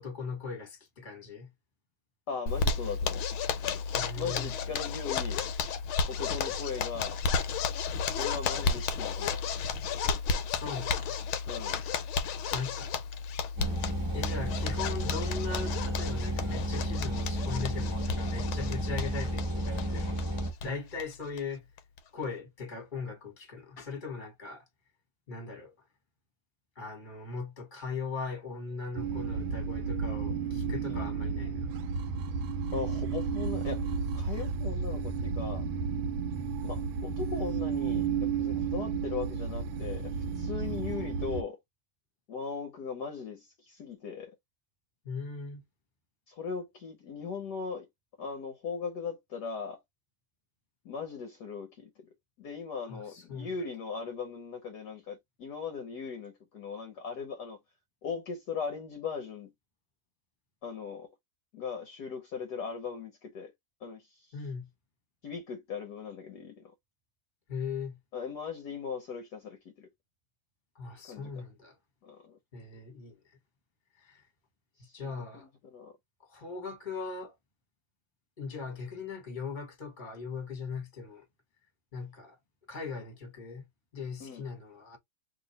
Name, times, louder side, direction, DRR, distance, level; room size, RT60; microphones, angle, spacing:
voice 1, 0.0-1.5 3.9-4.5 10.4-11.2 11.6-12.0 12.5-13.0 14.1-20.2 20.6-21.6 22.1-24.6 25.3-25.7 26.7-31.7 45.0-45.6 52.9-53.5 64.3-64.7 67.5-67.9 70.7-71.7 72.5-73.2 74.0-74.2 74.9-75.5 76.3-77.3 78.4-81.2 81.9-82.4 82.7-83.6 83.9-85.0, left 4 dB, 25° left, 1.5 m, -39 dB
voice 2, 2.3-3.3 4.2-5.4 6.1-7.2 8.1-9.4 11.4-11.8 30.9-31.1 32.7-35.6 36.6-41.6 42.3-44.3 46.3-47.9 48.2-49.8 50.8-52.1 52.4-57.6 58.0-59.5 60.6-61.1 61.5-63.5 63.8-64.4 65.2-66.7 68.1-69.9 71.1-71.4 72.0-72.4 74.8-75.9 84.2-84.4, left 5 dB, 60° left, 1.3 m, -39 dB
Zipper (clothing), 2.5-20.7 21.0-21.1 21.4-21.5 21.8-22.2, left 5 dB, 90° left, 1.6 m, -33 dB
sound 1, 13.6-20.5, equal, 15° right, 1.0 m, -32 dB
sound 2, 29.0-41.4, right 6 dB, 75° right, 1.5 m, -32 dB
3.2 x 3.0 x 4.1 m
omnidirectional pair, 2.2 m